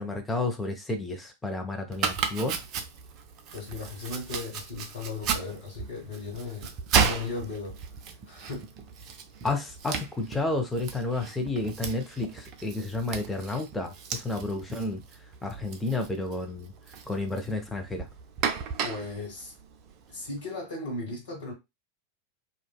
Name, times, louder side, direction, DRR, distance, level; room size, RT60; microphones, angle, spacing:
voice 1, 0.0-2.6 9.4-15.0 15.4-16.7 17.1-18.1, left 2 dB, 10° left, 0.6 m, -31 dB
Domestic sounds home sounds, 1.9-20.4, right 6 dB, 40° right, 0.4 m, -34 dB
voice 2, 3.5-6.7 7.0-7.8 8.3-8.7 18.8-19.5 20.1-21.5, left 3 dB, 55° left, 1.6 m, -36 dB
2.5 x 2.3 x 2.2 m
figure-of-eight pair, 90°, 0 cm